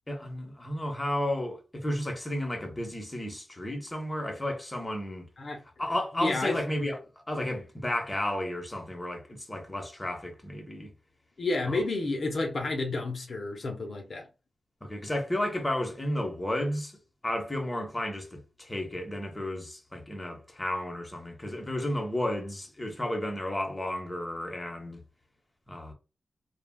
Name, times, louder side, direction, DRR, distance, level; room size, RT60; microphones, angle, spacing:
voice 1, 0.1-5.2 5.8-7.0 7.3-10.9 11.7-11.8 14.8-17.0 17.2-25.0 25.7-25.9, left 1 dB, 20° left, 0.9 m, -32 dB
voice 2, 6.1-6.6 11.4-14.3, left 2 dB, 60° left, 0.8 m, -30 dB
3.4 x 2.3 x 2.2 m
cardioid pair, 80°, 0 cm